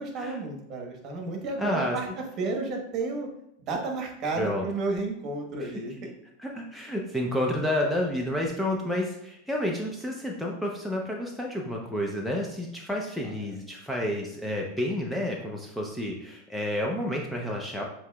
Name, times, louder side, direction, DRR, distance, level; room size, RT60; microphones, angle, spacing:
voice 1, 0.0-3.3 3.6-6.1, right 3 dB, 40° right, 2 dB, 1.1 m, -32 dB
voice 2, 1.6-2.0 4.4-4.6 5.6-5.7 6.0-6.1 6.4-17.8, left 1 dB, ahead, -2 dB, 0.6 m, -30 dB
6.9 x 2.9 x 2.3 m, 0.81 s
hypercardioid pair, 120°, 0 cm